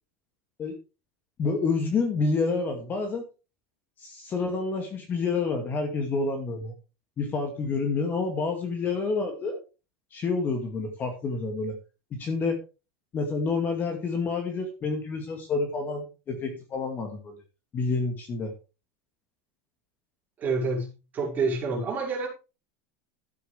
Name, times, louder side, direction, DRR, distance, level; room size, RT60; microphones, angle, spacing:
voice 1, 1.4-3.2 4.0-6.7 7.2-9.6 10.1-11.8 12.1-12.6 13.1-17.3 17.7-18.5, left 4 dB, 25° left, 4 dB, 2.3 m, -28 dB
voice 2, 20.4-22.3, right 4 dB, 20° right, -2 dB, 5.5 m, -28 dB
12.5 x 9.3 x 3.4 m, 0.31 s
supercardioid pair, 160°, 8 cm